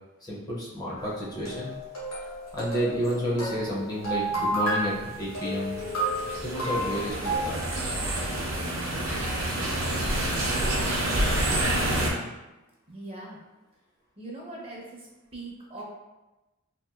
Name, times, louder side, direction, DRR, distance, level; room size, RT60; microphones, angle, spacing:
voice 1, 0.2-1.7 2.5-5.8 6.4-7.6, equal, 20° left, -6 dB, 0.5 m, -30 dB
sound 1, 1.0-7.4, right 1 dB, 85° left, 1.4 m, -32 dB
sound 2, 4.8-12.1, right 1 dB, 85° right, 0.6 m, -28 dB
Keyboard (musical), 5.4-8.6, equal, 70° left, 0.7 m, -44 dB
voice 2, 12.9-13.4 14.2-15.1 15.3-15.8, right 2 dB, 30° right, -3 dB, 0.6 m, -40 dB
2.8 x 2.5 x 2.3 m, 1.1 s
head